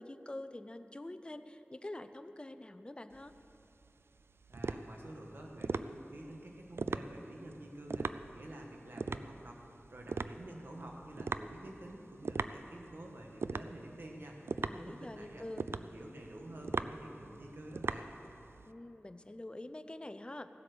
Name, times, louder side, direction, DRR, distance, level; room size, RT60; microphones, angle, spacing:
voice 1, 0.0-3.3 14.6-15.6 18.7-20.5, left 1 dB, 25° left, 9 dB, 0.6 m, -46 dB
sound 1, 3.1-18.7, right 4 dB, 80° right, 0.3 m, -40 dB
voice 2, 4.5-9.6 9.9-14.4 14.7-18.1, right 1 dB, 60° right, 0 dB, 1.5 m, -49 dB
17.0 x 7.9 x 6.8 m, 2.9 s
wide cardioid pair, 65°, 4 cm